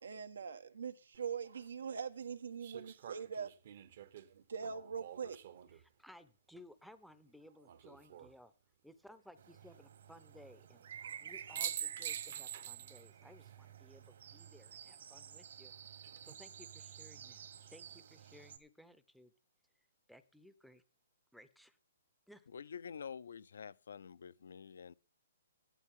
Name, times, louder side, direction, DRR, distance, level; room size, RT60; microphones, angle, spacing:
voice 1, 0.0-3.5 4.4-5.4 11.0-11.2, right 6 dB, 85° right, 1.4 m, -42 dB
sound 1, 1.1-1.2 2.6-5.8 7.6-8.3 11.1-11.2 11.5-13.1 13.4-13.5 15.8-16.3, right 10 dB, 45° right, 1.0 m, -45 dB
voice 2, 5.7-8.5 8.8-10.9 11.2-19.3 20.1-20.8 21.3-21.8 22.3-22.5, left 1 dB, ahead, 0.7 m, -59 dB
sound 2, 9.4-18.6, right 8 dB, 60° right, 1.9 m, -52 dB
voice 3, 22.5-24.9, left 7 dB, 70° left, 0.7 m, -48 dB
15.0 x 11.0 x 3.7 m
hypercardioid pair, 170°, 0 cm